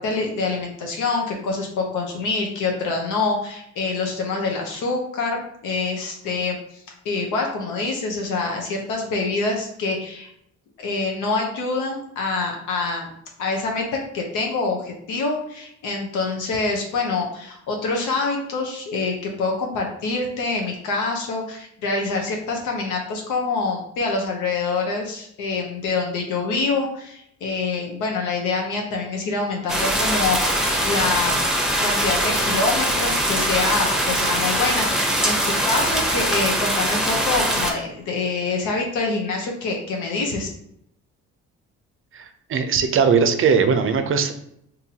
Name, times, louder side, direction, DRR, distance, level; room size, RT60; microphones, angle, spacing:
voice 1, 0.0-10.3 10.8-13.1 13.4-31.5 31.8-40.5, left 3 dB, 85° left, 1 dB, 0.7 m, -26 dB
sound 1, 29.7-37.7, right 1 dB, ahead, 0.7 m, -22 dB
voice 2, 42.1-44.3, right 6 dB, 45° right, 8 dB, 0.5 m, -19 dB
3.7 x 2.7 x 2.8 m, 0.74 s
cardioid pair, 90°, 30 cm